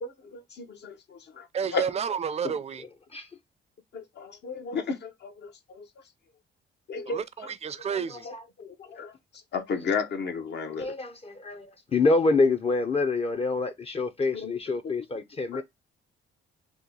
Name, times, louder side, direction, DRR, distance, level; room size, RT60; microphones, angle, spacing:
voice 1, 0.0-1.5 1.7-1.9 2.4-2.5 3.9-5.9 6.9-7.5 8.2-9.1 9.5-10.9 14.3-14.5 14.8-14.9 15.5-15.6, left 4 dB, 60° left, 0.8 m, -34 dB
voice 2, 1.5-2.8 7.1-8.3, right 7 dB, 35° right, 0.4 m, -31 dB
voice 3, 7.9-8.4 10.8-15.6, left 3 dB, 30° left, 0.5 m, -26 dB
2.9 x 2.3 x 3.7 m
cardioid pair, 90°, 20 cm